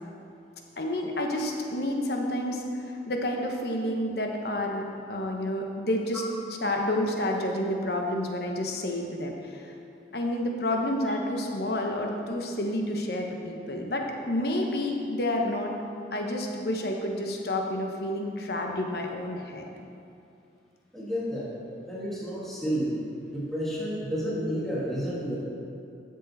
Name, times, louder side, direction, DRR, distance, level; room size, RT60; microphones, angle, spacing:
voice 1, 0.8-9.7 10.1-15.7 16.1-19.7, left 1 dB, 60° left, 2 dB, 1.0 m, -29 dB
voice 2, 20.9-21.5 21.9-22.9 23.2-25.4, equal, ahead, -8 dB, 1.6 m, -30 dB
12.0 x 6.6 x 4.1 m, 2.6 s
head